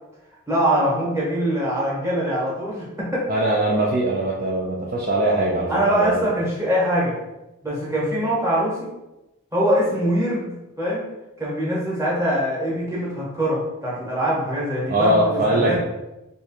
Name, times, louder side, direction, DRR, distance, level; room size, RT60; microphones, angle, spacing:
voice 1, 0.5-3.3 5.7-7.2 7.6-8.9 9.5-11.1 11.4-15.8, equal, 15° right, -7 dB, 1.1 m, -23 dB
voice 2, 3.3-6.2 14.9-15.8, right 1 dB, 45° right, -3 dB, 0.4 m, -21 dB
3.1 x 2.4 x 4.2 m, 0.98 s
head